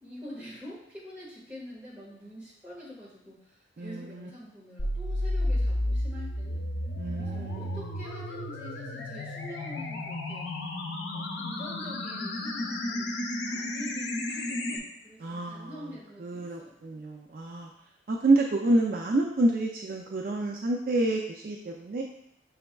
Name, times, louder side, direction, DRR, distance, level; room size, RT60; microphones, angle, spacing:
voice 1, 0.0-6.7 7.1-10.6 11.1-13.2 13.4-16.8, equal, 10° right, -8 dB, 1.5 m, -45 dB
voice 2, 3.8-4.3 7.0-7.9 15.2-15.7 16.2-17.7 18.1-22.0, right 2 dB, 50° right, 0 dB, 0.4 m, -28 dB
sound 1, 4.8-14.8, left 1 dB, 85° left, 0.6 m, -32 dB
6.0 x 3.5 x 2.3 m, 0.79 s
head